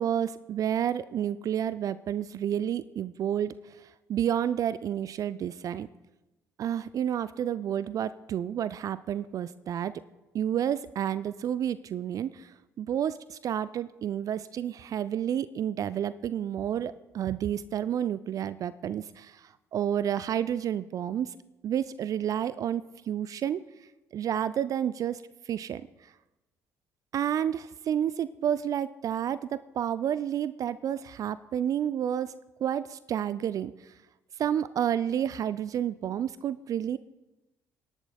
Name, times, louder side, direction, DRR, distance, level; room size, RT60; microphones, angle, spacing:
voice 1, 0.0-3.5 4.1-5.9 6.6-9.9 10.3-12.5 12.8-19.4 19.7-21.4 21.6-23.6 24.1-25.8 27.1-32.3 32.6-33.7 34.4-37.0, right 9 dB, 45° right, 16 dB, 0.4 m, -30 dB
27.5 x 11.0 x 2.3 m, 1.0 s
figure-of-eight pair, 50°, 8 cm